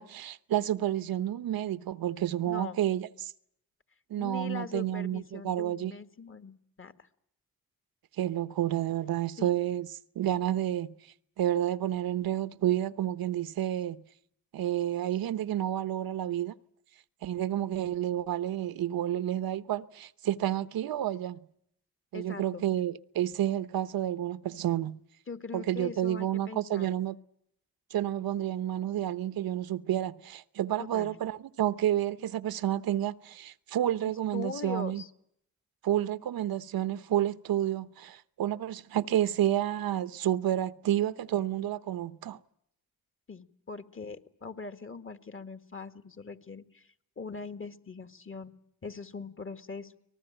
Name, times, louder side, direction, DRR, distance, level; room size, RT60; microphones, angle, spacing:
voice 1, 0.0-3.3 4.1-5.9 8.2-9.9 10.2-10.9 11.4-14.0 14.5-16.5 17.2-21.4 22.1-25.0 25.5-27.2 27.9-35.0 35.8-42.4, right 12 dB, 80° right, 0.9 m, -30 dB
voice 2, 2.4-2.8 4.2-6.9 9.4-9.5 22.1-22.6 25.3-27.1 30.8-31.2 34.0-35.1 43.3-46.9 47.2-48.5 48.8-50.0, left 4 dB, 35° left, 1.9 m, -41 dB
24.5 x 19.5 x 9.0 m
cardioid pair, 80°, 35 cm